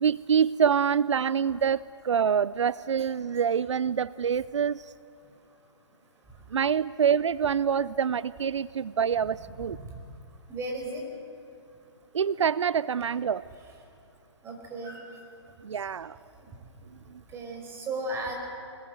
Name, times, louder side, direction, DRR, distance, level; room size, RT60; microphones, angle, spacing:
voice 1, 0.0-4.8 6.5-9.8 12.1-13.4 15.6-16.2, right 7 dB, 85° right, 19 dB, 0.5 m, -26 dB
voice 2, 9.5-10.0 10.5-11.1 14.4-15.2 16.4-16.5 17.3-18.3, right 2 dB, 15° right, 1 dB, 5.1 m, -36 dB
24.0 x 21.0 x 7.9 m, 2.9 s
hypercardioid pair, 140°, 15 cm